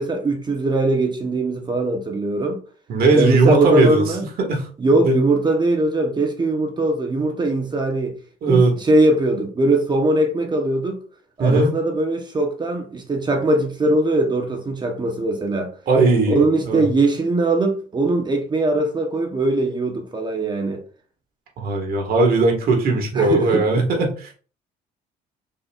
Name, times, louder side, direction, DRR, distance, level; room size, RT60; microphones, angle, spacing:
voice 1, 0.0-2.6 3.1-4.3 4.8-8.1 8.5-11.0 11.4-15.7 16.3-20.8 23.1-23.9, right 2 dB, 25° right, 0.9 m, -21 dB
voice 2, 2.9-4.0 4.4-4.6 5.0-5.2 8.4-8.7 11.4-11.7 15.9-16.9 21.6-24.3, right 3 dB, 60° right, 1.6 m, -18 dB
5.4 x 4.0 x 2.3 m
cardioid pair, 110°, 17 cm